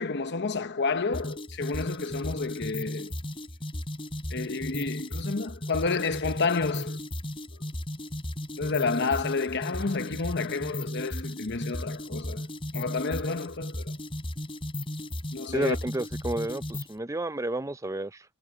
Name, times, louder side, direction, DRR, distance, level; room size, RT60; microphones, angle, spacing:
voice 1, 0.0-3.1 4.3-7.0 8.6-12.5 12.7-13.9 15.3-15.8, left 4 dB, 55° left, 0.9 m, -30 dB
sound 1, 1.1-17.0, left 1 dB, 25° left, 4.3 m, -35 dB
voice 2, 15.5-18.2, right 2 dB, 15° right, 0.5 m, -31 dB
head